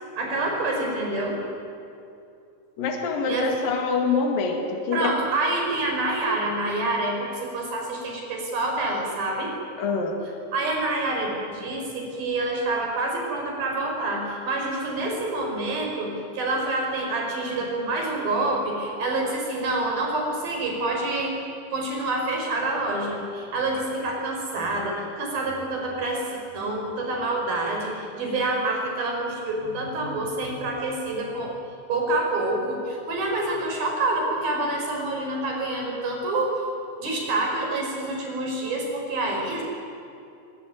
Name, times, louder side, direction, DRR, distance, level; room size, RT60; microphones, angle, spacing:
voice 1, 0.2-1.4 3.3-3.5 4.9-9.5 10.5-21.4 21.7-26.3 26.5-31.6 31.9-36.6 37.0-39.6, right 2 dB, 65° right, 1 dB, 6.7 m, -27 dB
voice 2, 2.8-5.1 9.8-10.2, left 4 dB, 65° left, 3 dB, 3.7 m, -25 dB
23.0 x 22.0 x 9.5 m, 2.6 s
omnidirectional pair, 4.5 m